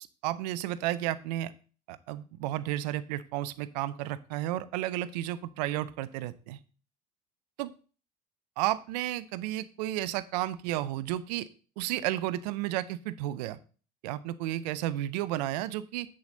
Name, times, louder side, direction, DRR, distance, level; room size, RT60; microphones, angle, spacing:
voice 1, 0.2-1.5 1.9-6.6 7.6-7.7 8.6-11.5 11.8-13.6 14.0-16.1, right 14 dB, 75° right, 15 dB, 0.6 m, -32 dB
7.9 x 7.0 x 3.9 m, 0.37 s
hypercardioid pair, 75°, 21 cm